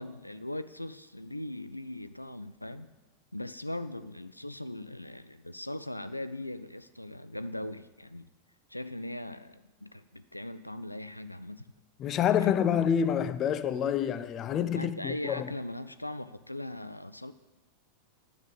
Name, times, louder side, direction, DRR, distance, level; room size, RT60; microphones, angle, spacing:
voice 1, 0.0-2.9 3.3-8.3 8.7-11.7 12.4-12.8 14.7-17.3, left 1 dB, 85° left, 0.4 m, -39 dB
voice 2, 12.0-15.5, left 9 dB, 30° left, 0.6 m, -27 dB
9.7 x 6.9 x 7.9 m
figure-of-eight pair, 90°, 0 cm